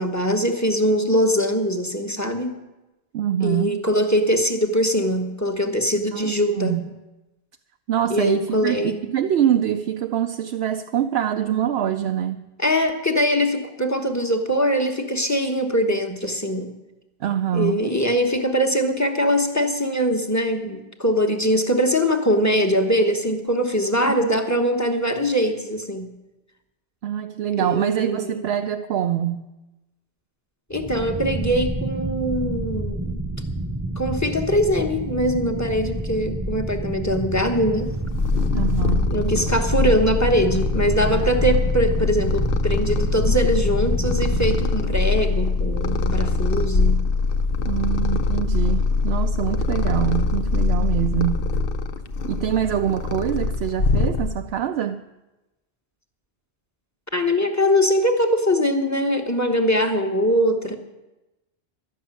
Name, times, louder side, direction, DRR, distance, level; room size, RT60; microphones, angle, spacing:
voice 1, 0.0-2.6 3.4-6.8 8.1-9.0 11.4-12.2 12.6-16.7 17.5-26.1 27.6-28.4 30.7-33.2 34.0-37.9 39.1-47.0 50.8-50.9 57.1-60.8, equal, 15° left, 6 dB, 1.2 m, -22 dB
voice 2, 3.1-3.8 6.1-7.0 7.9-12.4 17.2-17.9 24.2-24.3 27.0-29.4 38.5-39.1 47.7-51.5 52.2-55.0, right 10 dB, 75° right, 6 dB, 0.8 m, -24 dB
sound 1, 30.7-44.7, right 2 dB, 20° right, 0.4 m, -29 dB
Purr, 37.7-54.6, left 4 dB, 60° left, 0.9 m, -23 dB
12.5 x 6.7 x 9.9 m, 1.0 s
omnidirectional pair, 1.1 m